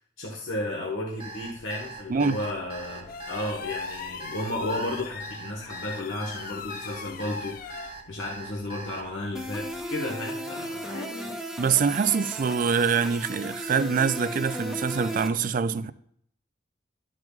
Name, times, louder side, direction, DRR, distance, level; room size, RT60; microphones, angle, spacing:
voice 1, 0.2-11.4, left 1 dB, 90° left, 1.3 m, -33 dB
Alarm, 1.2-9.0, right 3 dB, 30° right, 1.2 m, -41 dB
sound 1, 1.3-9.9, left 6 dB, 50° left, 0.4 m, -42 dB
voice 2, 2.1-2.4 11.6-15.9, right 6 dB, 45° right, 0.4 m, -25 dB
sound 2, 9.3-15.3, equal, ahead, 0.8 m, -35 dB
12.0 x 6.2 x 2.4 m
head